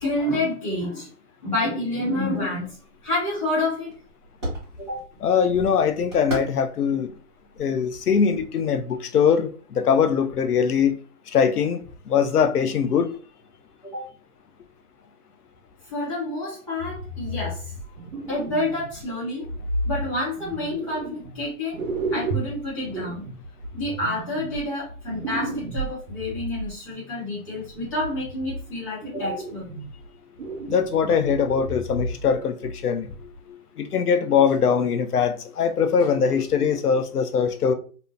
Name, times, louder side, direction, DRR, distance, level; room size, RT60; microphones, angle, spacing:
voice 1, 0.0-1.1 1.4-3.9 4.8-5.0 13.8-14.1 15.9-17.7 18.3-19.5 19.8-21.8 22.1-23.2 23.7-29.7, left 1 dB, 20° left, 0.6 m, -28 dB
sound 1, 2.2-8.5, right 1 dB, 20° right, 0.8 m, -39 dB
voice 2, 5.2-7.1 7.6-9.5 9.8-10.9 11.3-11.8 12.1-13.1 30.7-33.1 33.8-37.7, left 7 dB, 85° left, 0.6 m, -21 dB
sound 2, 16.8-19.0 19.4-21.4 21.7-26.7 27.7-28.7 29.0-30.1 30.4-32.4 32.6-32.8 33.3-33.4, right 2 dB, 70° right, 0.8 m, -33 dB
2.6 x 2.0 x 2.5 m
figure-of-eight pair, 160°, 45 cm